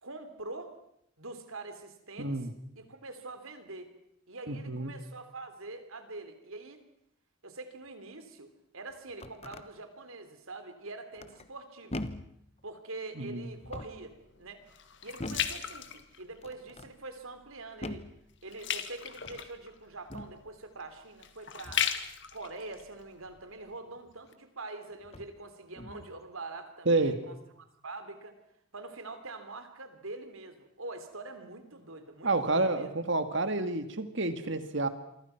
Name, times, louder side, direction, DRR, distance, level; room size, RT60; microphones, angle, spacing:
voice 1, 0.0-0.7 1.2-2.5 2.7-3.9 4.3-6.8 7.4-12.0 12.6-14.6 15.0-18.0 18.4-21.9 22.3-28.4 28.7-32.9, right 3 dB, 75° right, 8 dB, 3.4 m, -44 dB
voice 2, 2.2-2.5 4.5-4.9 13.2-13.5 26.9-27.2 32.2-34.9, right 2 dB, 55° right, 9 dB, 2.0 m, -29 dB
sound 1, 8.9-9.7 11.2-11.6 11.9-12.4 13.5-14.1 15.2-15.6 16.4-16.9 17.8-18.2 19.1-19.5 20.1-20.4 21.6-22.0 24.1-24.2 25.0-25.4 25.7-26.2, left 1 dB, 30° left, 1.1 m, -42 dB
sound 2, 13.4-16.7 17.2-17.5 17.8-23.8 24.3-24.4, left 9 dB, 55° left, 1.8 m, -37 dB
28.0 x 24.5 x 5.9 m, 0.74 s
head